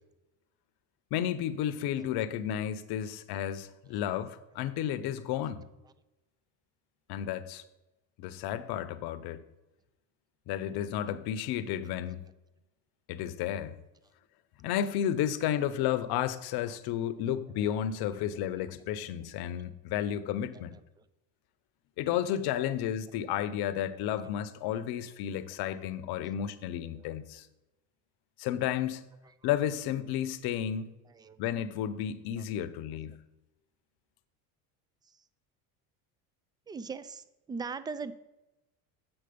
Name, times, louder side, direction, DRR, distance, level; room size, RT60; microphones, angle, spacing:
voice 1, 1.1-5.7 7.1-7.6 8.2-9.4 10.5-12.2 13.1-13.8 14.6-20.8 22.0-27.5 28.4-29.0 29.4-30.9 31.4-33.2, left 10 dB, 60° left, 0.8 m, -32 dB
voice 2, 18.1-18.7 20.5-21.1 22.7-22.8 23.3-23.4 24.7-24.8 26.9-27.0 29.2-29.3 31.1-31.4 32.4-32.7 35.0-35.2 36.7-38.1, right 5 dB, 10° right, 0.3 m, -43 dB
8.0 x 6.0 x 5.2 m
supercardioid pair, 90°, 42 cm